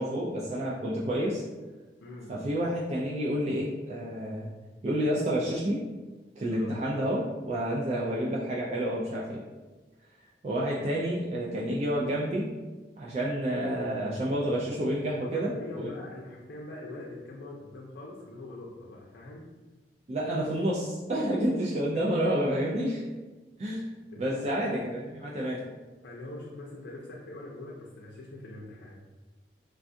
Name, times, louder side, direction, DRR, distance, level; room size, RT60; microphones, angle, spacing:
voice 1, 0.0-1.4 2.3-4.5 4.8-5.8 6.4-9.4 10.4-12.5 13.0-15.9 20.1-23.0 23.6-23.8 24.2-25.6, equal, 35° right, -5 dB, 0.3 m, -29 dB
voice 2, 2.0-2.3 6.5-6.8 15.3-19.5 22.2-22.6 24.1-24.7 26.0-29.0, left 2 dB, 85° left, -4 dB, 0.5 m, -43 dB
3.4 x 2.3 x 2.6 m, 1.2 s
head